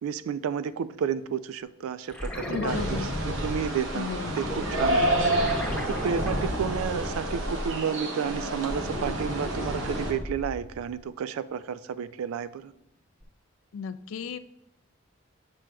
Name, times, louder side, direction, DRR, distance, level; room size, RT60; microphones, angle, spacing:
voice 1, 0.0-4.1 4.3-12.7, right 7 dB, 90° right, 15 dB, 0.3 m, -32 dB
sound 1, 2.1-7.9 8.3-10.8 13.2-13.3, equal, 5° left, 0.8 m, -33 dB
voice 2, 2.5-3.0 3.9-4.4 13.7-14.4, left 6 dB, 75° left, 13 dB, 0.3 m, -34 dB
sound 2, 2.7-10.1, right 1 dB, 70° right, 1.0 m, -30 dB
7.3 x 6.1 x 2.3 m, 0.84 s
head